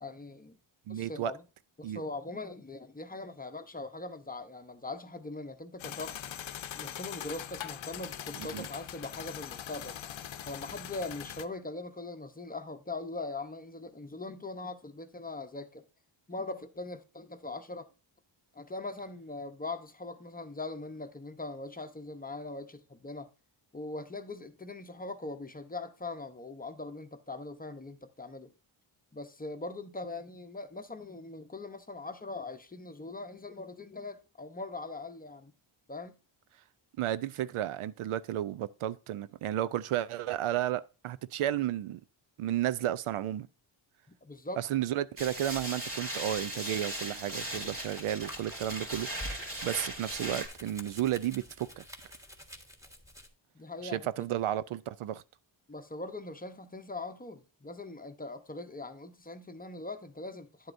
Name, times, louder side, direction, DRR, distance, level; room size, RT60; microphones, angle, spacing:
voice 1, 0.0-0.6 0.9-1.4 1.8-6.2 6.7-10.0 10.5-15.8 16.3-17.9 18.5-23.3 23.7-28.5 29.1-35.5 35.9-36.2 44.2-44.7 53.5-54.0 55.7-60.7, left 2 dB, 15° left, 0.8 m, -41 dB
voice 2, 0.9-1.3 1.8-2.0 8.5-8.7 37.0-42.0 42.4-43.5 44.6-51.8 53.8-55.2, right 12 dB, 80° right, 0.6 m, -33 dB
sound 1, 5.8-11.5, left 10 dB, 65° left, 0.8 m, -42 dB
sound 2, 45.2-50.5, right 1 dB, 25° right, 2.7 m, -38 dB
Domestic sounds home sounds, 47.3-53.3, left 1 dB, 5° right, 1.4 m, -51 dB
10.0 x 7.7 x 2.6 m
cardioid pair, 85°, 50 cm